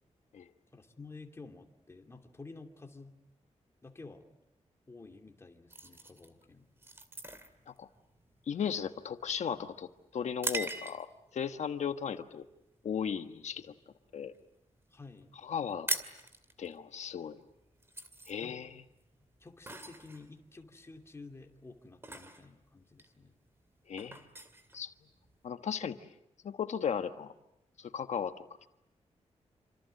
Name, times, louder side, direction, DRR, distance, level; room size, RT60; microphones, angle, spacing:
voice 1, 0.7-3.2 3.8-4.2 4.9-6.6 14.9-15.3 18.4-18.7 19.4-23.4, left 3 dB, 20° left, 3 dB, 2.8 m, -51 dB
sound 1, 5.7-11.3 11.8-12.1 12.6-12.9 13.2-14.4 14.7-14.8 15.0-15.2 15.5-25.5, right 2 dB, 20° right, 2.3 m, -42 dB
voice 2, 8.5-12.5 12.8-13.7 14.1-14.3 15.4-15.9 16.6-17.4 18.3-18.8 23.9-24.2 24.7-24.9 25.4-26.0 26.4-27.3 27.8-28.3 28.6-28.7, left 7 dB, 75° left, 8 dB, 1.4 m, -36 dB
28.0 x 26.5 x 7.8 m, 0.83 s
wide cardioid pair, 155°, 12 cm